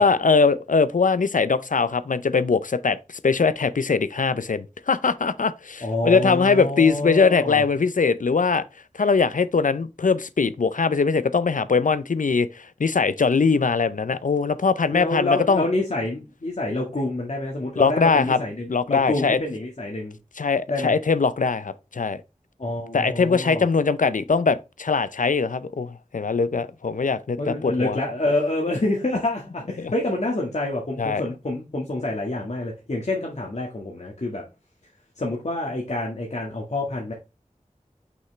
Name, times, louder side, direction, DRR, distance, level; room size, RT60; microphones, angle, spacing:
voice 1, 0.0-8.6 8.9-15.7 17.8-18.4 18.7-19.4 20.4-22.2 22.9-28.0 29.8-29.9 31.0-31.2, left 4 dB, 80° left, 0.6 m, -21 dB
voice 2, 5.8-7.6 14.9-20.2 20.7-21.0 22.6-23.7 27.4-34.4 35.2-37.1, left 2 dB, 60° left, 1.6 m, -27 dB
6.2 x 5.8 x 3.2 m
wide cardioid pair, 50°, 13 cm